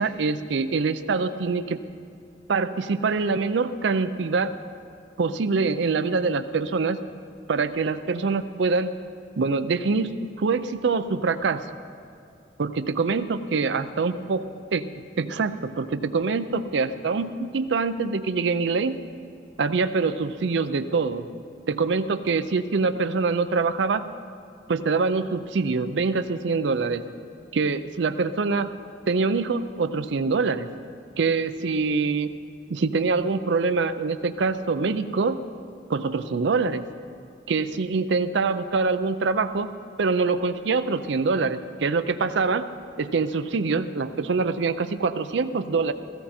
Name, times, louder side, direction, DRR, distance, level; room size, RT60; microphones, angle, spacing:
voice 1, 0.0-1.8 2.5-4.6 5.2-7.0 7.5-8.9 9.4-11.6 12.6-14.5 14.7-14.9 15.2-19.0 19.6-21.3 21.7-24.0 24.7-27.0 27.5-28.8 29.1-30.7 31.2-32.3 32.7-35.4 35.9-36.8 37.5-42.7 43.0-45.9, right 4 dB, 65° right, 10 dB, 0.5 m, -24 dB
16.0 x 15.0 x 4.3 m, 2.5 s
head